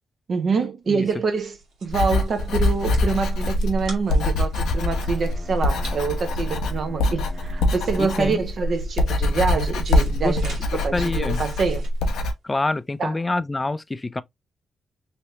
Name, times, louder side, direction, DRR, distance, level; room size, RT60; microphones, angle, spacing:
voice 1, 0.3-11.9 13.0-13.2, right 5 dB, 60° right, 0.7 m, -26 dB
sound 1, 1.0-13.0, right 1 dB, 85° right, 1.4 m, -45 dB
Writing, 1.9-12.3, left 2 dB, 90° left, 0.7 m, -24 dB
Bowed string instrument, 4.7-8.7, equal, 5° right, 0.7 m, -44 dB
voice 2, 8.0-8.4 10.1-10.4 10.9-11.4 12.4-14.2, left 2 dB, 20° left, 0.3 m, -26 dB
3.1 x 2.8 x 2.9 m
cardioid pair, 75°, 0 cm